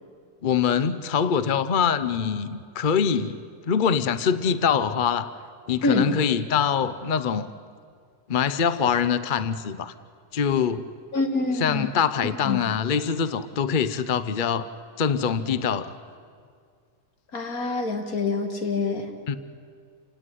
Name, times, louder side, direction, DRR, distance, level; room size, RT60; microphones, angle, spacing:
voice 1, 0.4-3.4 3.7-5.3 5.7-7.5 8.3-9.9 10.3-10.9 11.6-14.7 15.0-15.9 19.3-19.4, left 7 dB, 45° left, 13 dB, 0.7 m, -24 dB
voice 2, 11.1-11.9 12.2-12.6 17.3-19.1, left 3 dB, 70° left, 5 dB, 2.6 m, -26 dB
28.0 x 17.5 x 9.9 m, 2.1 s
omnidirectional pair, 1.6 m